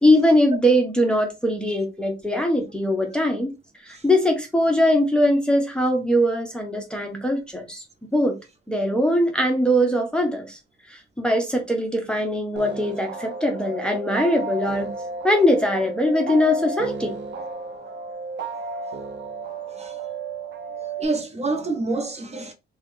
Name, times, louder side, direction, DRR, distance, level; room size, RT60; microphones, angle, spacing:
voice 1, 0.0-3.5 3.9-7.8 8.1-8.4 8.7-10.6 10.9-14.9 15.2-17.1, equal, 5° left, 0.8 m, -21 dB
sound 1, 12.6-21.1, right 3 dB, 60° right, 0.8 m, -33 dB
voice 2, 19.7-20.0 21.0-22.5, right 3 dB, 35° right, 0.9 m, -27 dB
2.9 x 2.4 x 3.6 m
cardioid pair, 90°, 20 cm